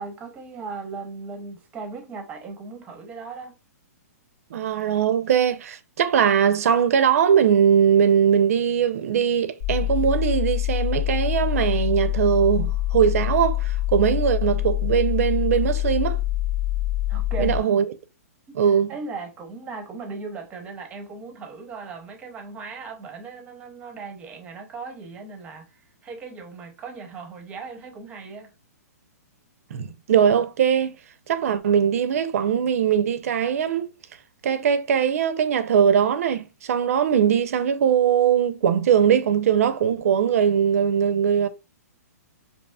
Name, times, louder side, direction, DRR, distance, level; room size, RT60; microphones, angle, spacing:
voice 1, 0.0-3.5 17.1-17.6 18.5-18.6 18.9-28.5, right 4 dB, 15° right, 0.6 m, -37 dB
voice 2, 4.5-16.2 17.4-17.9 18.5-18.9 29.7-31.0 31.3-33.9 34.4-41.5, right 8 dB, 60° right, 0.5 m, -21 dB
sound 1, 9.6-17.6, left 15 dB, 70° left, 0.8 m, -25 dB
4.2 x 2.9 x 2.2 m
hypercardioid pair, 155°, 9 cm